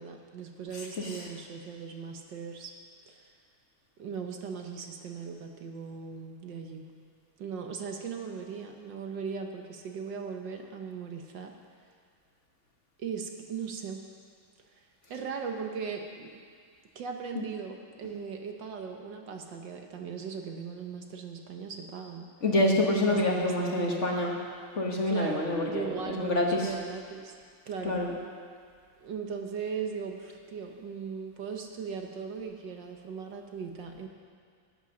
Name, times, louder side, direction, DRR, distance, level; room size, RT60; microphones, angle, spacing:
voice 1, 0.0-2.7 3.1-3.2 4.0-6.8 7.4-11.5 13.0-14.0 14.8-14.9 15.1-16.4 16.9-22.3 23.1-24.0 25.0-27.3 27.7-28.0 29.0-34.1, right 6 dB, 65° right, 3 dB, 1.6 m, -38 dB
voice 2, 22.4-24.4 24.7-26.7 27.8-28.1, left 1 dB, 40° left, -1 dB, 1.4 m, -27 dB
16.0 x 8.8 x 6.3 m, 2.1 s
omnidirectional pair, 2.2 m